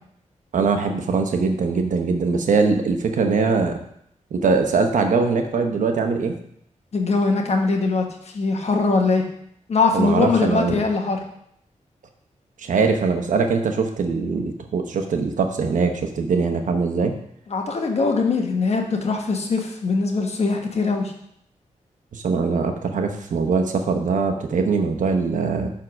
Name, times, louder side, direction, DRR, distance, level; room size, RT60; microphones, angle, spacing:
voice 1, 0.5-3.8 4.3-6.3 9.9-10.8 12.6-17.1 22.1-25.7, right 4 dB, 80° right, 5 dB, 0.9 m, -22 dB
voice 2, 6.9-9.3 9.7-11.2 17.5-21.1, left 4 dB, 55° left, 3 dB, 1.2 m, -21 dB
9.6 x 3.7 x 6.1 m, 0.70 s
wide cardioid pair, 140°, 13 cm